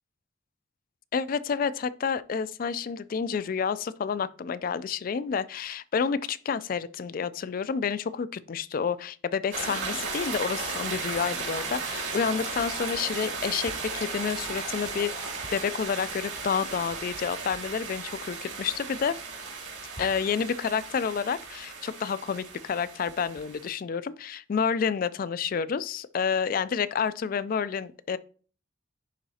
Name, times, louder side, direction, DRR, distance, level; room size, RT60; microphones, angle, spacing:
voice 1, 1.1-19.2 20.0-28.2, left 6 dB, 45° left, 0.3 m, -29 dB
sound 1, 9.5-23.7, right 4 dB, 70° right, 2.6 m, -35 dB
10.0 x 4.0 x 2.8 m
head